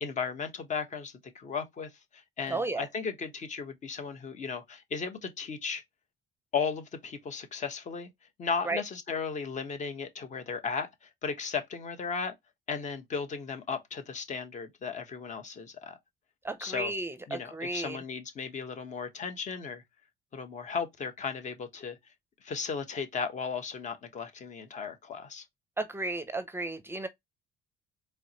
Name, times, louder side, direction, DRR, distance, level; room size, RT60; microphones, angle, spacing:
voice 1, 0.0-5.8 6.5-8.1 8.4-12.3 12.7-16.0 16.6-16.9 17.3-19.8 20.3-22.0 22.4-25.4, left 5 dB, 45° left, 1.2 m, -35 dB
voice 2, 2.5-2.8 8.7-8.8 16.4-18.0 25.8-27.1, right 2 dB, 15° right, 0.6 m, -33 dB
4.5 x 3.3 x 3.0 m
cardioid pair, 110°, 17 cm